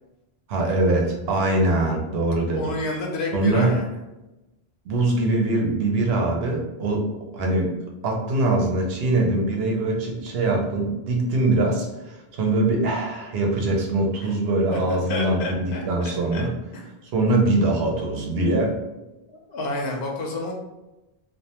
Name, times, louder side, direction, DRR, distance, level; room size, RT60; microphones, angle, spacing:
voice 1, 0.5-2.7 3.3-3.8 4.8-7.7 8.0-16.5 17.1-18.8, right 2 dB, 80° right, 0 dB, 0.8 m, -23 dB
voice 2, 2.5-3.9 14.7-14.8 15.1-16.5 19.5-20.5, left 2 dB, 85° left, 0 dB, 0.8 m, -29 dB
2.4 x 2.1 x 2.8 m, 1.0 s
omnidirectional pair, 1.0 m